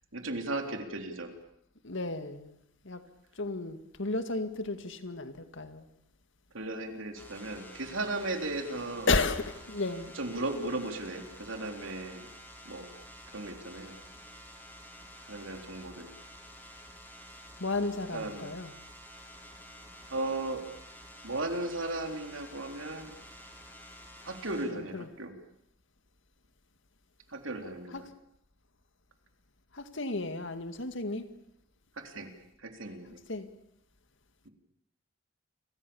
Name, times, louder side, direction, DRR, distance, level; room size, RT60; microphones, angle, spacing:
voice 1, 0.1-1.3 6.5-9.1 10.1-12.3 12.7-12.9 13.3-14.0 15.3-16.1 18.1-18.5 20.1-20.6 21.2-23.2 24.2-25.3 27.3-28.1 32.0-32.3 32.6-33.2 34.5-34.6, right 2 dB, 70° right, 5 dB, 3.8 m, -36 dB
voice 2, 1.8-2.5 2.8-3.0 3.4-5.9 9.1-10.1 17.6-18.7 24.7-25.1 27.9-28.0 29.7-31.3 33.3-33.5, left 3 dB, 65° left, 9 dB, 2.2 m, -33 dB
sound 1, 7.2-24.7, equal, 10° left, 5.4 m, -50 dB
29.5 x 24.0 x 7.2 m, 0.77 s
head